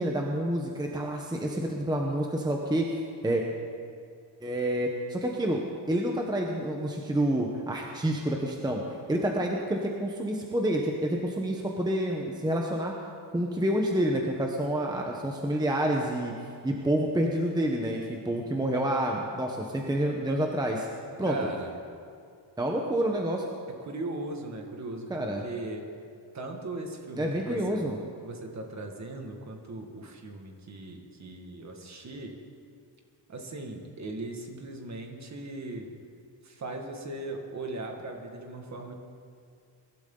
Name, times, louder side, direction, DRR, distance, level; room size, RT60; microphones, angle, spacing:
voice 1, 0.0-3.4 4.4-5.6 5.9-12.9 13.3-16.3 16.6-20.9 21.2-21.4 22.6-23.4 25.1-25.4 27.2-28.0, right 1 dB, 10° right, 0 dB, 1.0 m, -28 dB
voice 2, 21.3-21.7 23.8-25.9 26.3-27.8 28.2-32.3 33.3-36.0 36.4-38.9, right 2 dB, 35° right, 2 dB, 1.9 m, -38 dB
23.0 x 12.5 x 3.9 m, 2.4 s
wide cardioid pair, 155°, 45 cm